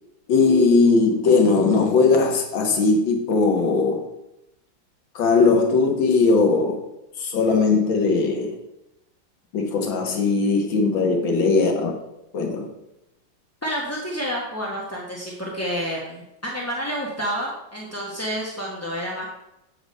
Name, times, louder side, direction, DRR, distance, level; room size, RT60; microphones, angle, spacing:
voice 1, 0.3-4.1 5.2-6.8 7.2-8.6 9.5-11.9 12.3-12.7, left 4 dB, 80° left, 2 dB, 1.9 m, -19 dB
voice 2, 13.6-19.3, equal, 15° left, -3 dB, 0.6 m, -29 dB
7.9 x 4.9 x 5.2 m, 0.87 s
omnidirectional pair, 2.1 m